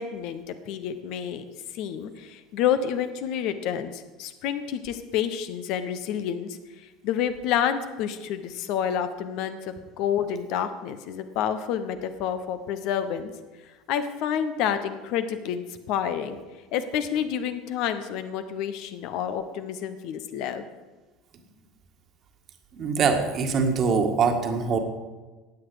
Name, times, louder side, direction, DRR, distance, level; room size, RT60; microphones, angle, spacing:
voice 1, 0.0-1.4 1.7-13.3 13.9-16.4 16.7-20.6, left 9 dB, 50° left, 10 dB, 1.0 m, -29 dB
voice 2, 22.7-24.8, right 5 dB, 40° right, 5 dB, 1.7 m, -23 dB
15.5 x 9.5 x 5.0 m, 1.3 s
figure-of-eight pair, 70°, 0 cm